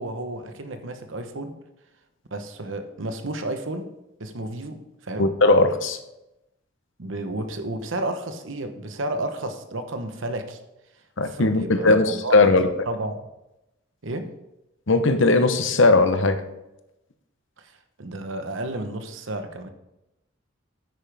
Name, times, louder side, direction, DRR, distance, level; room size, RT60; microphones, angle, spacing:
voice 1, 0.0-1.6 2.3-3.9 4.2-5.3 7.0-10.6 11.3-12.4 12.9-13.3 14.0-14.3 17.6-17.7 18.0-19.7, right 1 dB, 70° right, 7 dB, 1.0 m, -32 dB
voice 2, 5.2-6.0 11.2-12.7 14.9-16.4, left 3 dB, 65° left, 9 dB, 0.9 m, -18 dB
9.8 x 8.8 x 3.5 m, 0.91 s
head